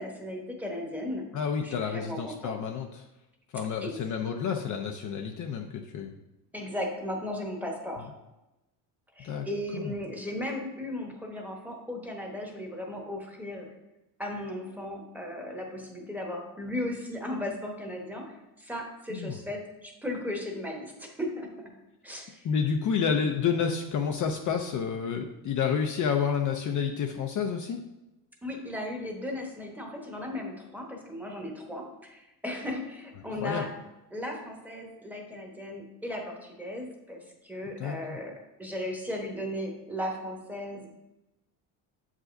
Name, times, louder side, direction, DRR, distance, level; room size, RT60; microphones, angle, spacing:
voice 1, 0.0-1.3 1.6-2.6 3.8-4.0 6.5-8.1 9.2-13.7 14.2-21.5 22.0-22.5 28.4-33.7 34.1-38.3 38.6-40.9, left 1 dB, 5° right, 0 dB, 1.0 m, -36 dB
voice 2, 1.3-3.1 3.5-6.1 9.2-9.5 9.7-9.9 19.1-19.4 22.4-27.8 33.3-33.7 37.8-38.2, left 6 dB, 45° left, 3 dB, 0.5 m, -29 dB
7.5 x 4.9 x 2.6 m, 0.97 s
cardioid pair, 115°, 44 cm